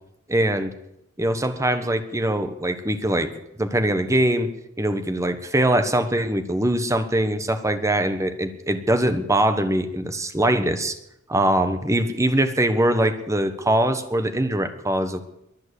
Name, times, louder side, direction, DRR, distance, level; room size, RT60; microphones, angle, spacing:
voice 1, 0.3-0.7 1.2-3.3 3.6-4.5 4.8-11.0 11.3-15.2, right 1 dB, 15° right, 9 dB, 1.2 m, -22 dB
22.5 x 7.6 x 8.4 m, 0.82 s
head